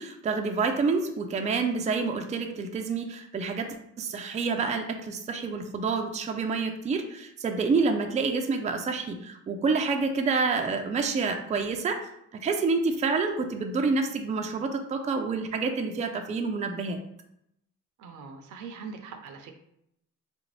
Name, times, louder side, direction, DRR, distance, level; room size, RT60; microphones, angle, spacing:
voice 1, 0.0-12.0 12.3-17.0, right 4 dB, 25° right, 5 dB, 0.4 m, -28 dB
voice 2, 18.0-19.5, right 5 dB, 75° right, 6 dB, 0.6 m, -42 dB
3.3 x 2.6 x 3.1 m, 0.78 s
cardioid pair, 90°, 30 cm